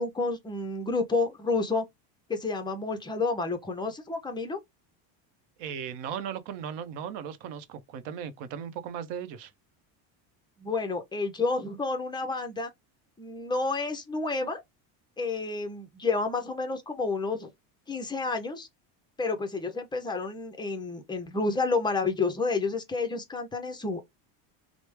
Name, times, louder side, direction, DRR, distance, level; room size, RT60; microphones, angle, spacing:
voice 1, 0.0-1.8 2.3-4.6 10.6-12.7 13.2-14.6 15.2-17.5 17.9-18.7 19.2-24.0, left 3 dB, 10° left, 0.4 m, -30 dB
voice 2, 5.6-9.5, right 8 dB, 60° right, 0.7 m, -37 dB
3.1 x 2.0 x 3.1 m
supercardioid pair, 120°, 48 cm